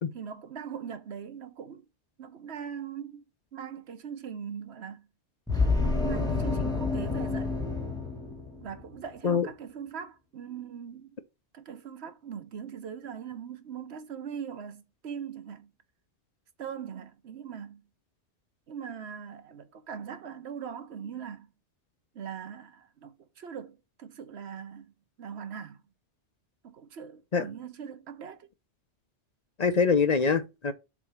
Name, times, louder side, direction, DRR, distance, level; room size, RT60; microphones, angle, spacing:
voice 1, 0.1-1.9 2.2-3.3 3.5-5.1 5.8-7.5 8.6-11.1 11.5-15.7 16.6-17.8 18.7-21.5 22.1-25.8 26.6-28.5, right 7 dB, 65° right, 1.1 m, -41 dB
sound 1, 5.5-8.9, left 3 dB, 5° left, 1.4 m, -29 dB
voice 2, 29.6-30.7, left 5 dB, 45° left, 0.6 m, -24 dB
7.2 x 2.8 x 4.8 m
omnidirectional pair, 1.2 m